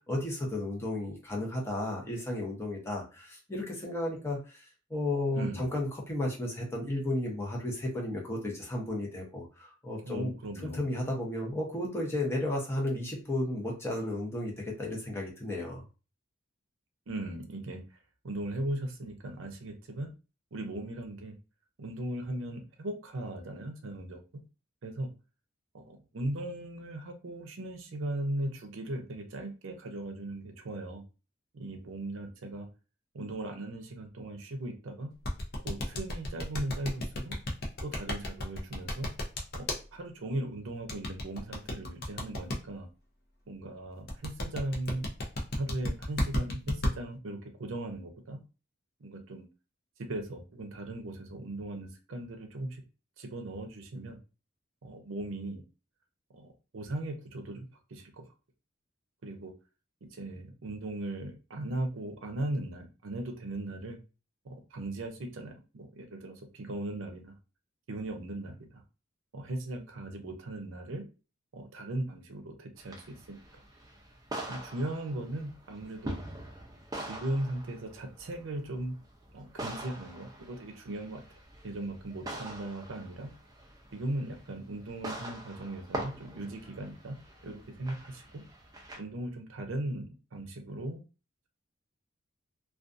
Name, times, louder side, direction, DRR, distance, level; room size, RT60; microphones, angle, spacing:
voice 1, 0.1-4.6 4.9-10.3 10.7-15.8, left 1 dB, 15° left, -1 dB, 0.7 m, -33 dB
voice 2, 5.3-5.7 10.0-10.8 17.1-17.8 18.2-20.1 20.5-21.4 21.8-24.2 24.8-25.1 25.7-31.0 31.5-32.7 33.1-35.1 35.6-37.3 37.8-39.1 39.5-39.7 39.9-42.9 43.5-45.1 45.6-48.4 49.0-49.4 50.0-52.8 53.2-54.2 54.8-55.6 56.3-58.2 59.2-59.5 60.1-64.0 64.4-67.3 67.9-68.8 69.3-71.0 71.5-73.6 74.5-76.2 77.1-79.0 79.3-81.2 81.6-83.3 83.9-87.2 87.4-88.4 89.0-91.0, right 1 dB, 75° right, 4 dB, 0.5 m, -38 dB
sound 1, 35.2-39.8 40.9-42.6 44.1-46.9, left 1 dB, 50° left, 0.6 m, -32 dB
sound 2, 72.8-89.0, right 1 dB, 20° right, 0.5 m, -44 dB
2.4 x 2.2 x 2.5 m, 0.32 s
head